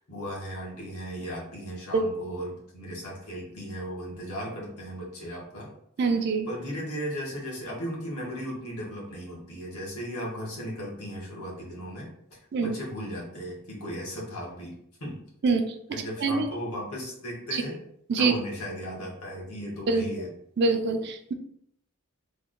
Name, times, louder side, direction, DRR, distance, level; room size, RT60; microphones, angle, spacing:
voice 1, 0.0-5.7 6.5-12.1 12.6-14.7 15.0-15.2 15.9-17.8 18.2-20.3, equal, 85° left, -4 dB, 1.4 m, -36 dB
voice 2, 6.0-6.5 12.5-12.8 15.4-16.4 17.5-17.6 18.1-18.3 19.9-20.1 20.6-21.3, right 4 dB, 50° right, 6 dB, 0.4 m, -25 dB
3.4 x 2.2 x 3.7 m, 0.72 s
head